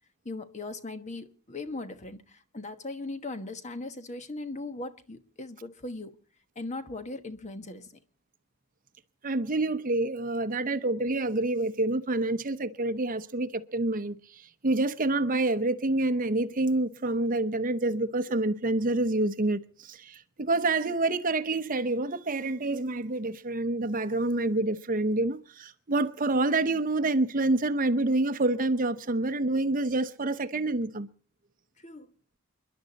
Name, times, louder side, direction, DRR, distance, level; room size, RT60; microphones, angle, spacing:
voice 1, 0.2-6.2 6.5-8.0 31.8-32.1, left 2 dB, 30° left, 1.2 m, -39 dB
voice 2, 9.2-31.1, right 2 dB, 35° right, 0.8 m, -27 dB
29.0 x 11.0 x 4.1 m
head